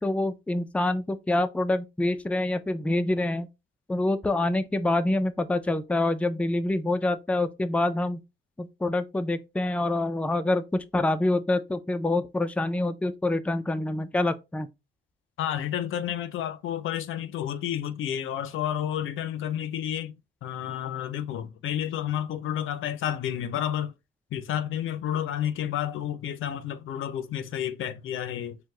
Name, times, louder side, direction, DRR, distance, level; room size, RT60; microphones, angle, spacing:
voice 1, 0.0-3.5 3.9-8.2 8.6-14.7, left 2 dB, 5° left, 0.4 m, -26 dB
voice 2, 15.4-20.2 20.4-23.9 24.3-28.6, left 10 dB, 80° left, 0.5 m, -30 dB
4.5 x 2.2 x 3.7 m
cardioid pair, 100°, 20 cm